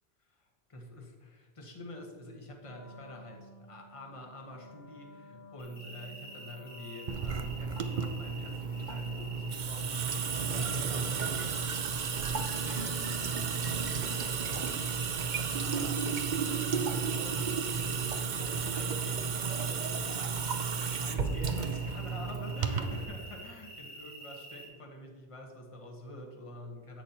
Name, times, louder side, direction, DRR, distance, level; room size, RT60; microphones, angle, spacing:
voice 1, 0.2-11.7 12.4-14.8 15.2-16.1 16.4-27.0, left 1 dB, 30° left, 1 dB, 1.3 m, -47 dB
Wind instrument woodwind instrument, 2.6-7.7, left 1 dB, 80° left, 1.3 m, -54 dB
sound 1, 5.6-24.7, right 1 dB, 60° left, 3.0 m, -48 dB
Water tap faucet / Sink (filling or washing) / Drip, 7.1-23.0, right 6 dB, 55° right, 0.7 m, -33 dB
10.5 x 8.3 x 2.9 m, 1.5 s
omnidirectional pair, 1.0 m